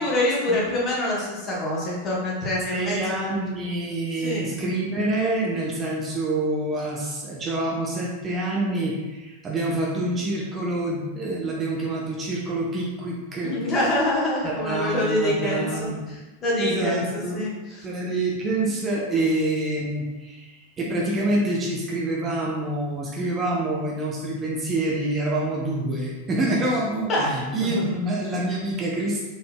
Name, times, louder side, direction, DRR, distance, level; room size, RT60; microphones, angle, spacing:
voice 1, 0.0-3.4 4.2-4.5 13.4-17.9 27.1-27.3 27.6-28.0, left 1 dB, 30° left, -5 dB, 1.2 m, -26 dB
voice 2, 2.7-13.6 14.4-16.0 16.5-17.4 17.8-29.3, right 2 dB, 25° right, -3 dB, 0.6 m, -27 dB
3.8 x 3.3 x 2.2 m, 1.1 s
figure-of-eight pair, 90°, 0 cm